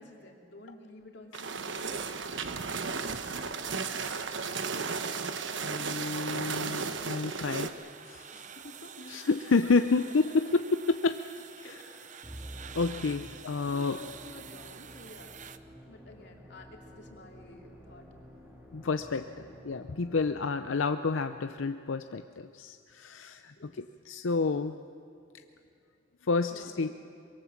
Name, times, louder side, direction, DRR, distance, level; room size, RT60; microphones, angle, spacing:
voice 1, 0.0-2.4 8.3-9.2 11.6-12.4 13.1-15.4 15.9-18.1 20.0-20.2 20.7-20.8 23.5-23.8 26.5-26.9, left 2 dB, 60° left, 2 dB, 3.0 m, -51 dB
sound 1, 1.3-7.7, right 5 dB, 70° right, 1.1 m, -34 dB
sound 2, 4.8-15.6, right 8 dB, 40° right, 0.8 m, -49 dB
voice 2, 5.6-7.7 8.1-8.4 9.1-11.2 11.6-11.8 12.7-14.0 18.7-24.8 26.2-26.9, left 4 dB, 90° left, 9 dB, 0.6 m, -29 dB
Musical instrument, 12.2-20.7, equal, 10° right, 2.5 m, -50 dB
24.5 x 23.0 x 7.3 m, 2.4 s
head